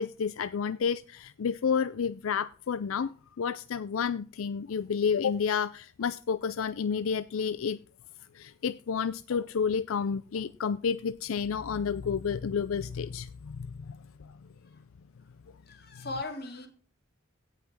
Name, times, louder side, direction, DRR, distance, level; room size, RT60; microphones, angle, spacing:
voice 1, 0.0-7.8 8.3-14.3, left 6 dB, 80° left, 15 dB, 0.4 m, -30 dB
voice 2, 15.6-16.7, left 2 dB, 50° left, 6 dB, 2.4 m, -38 dB
16.5 x 5.8 x 6.0 m, 0.40 s
head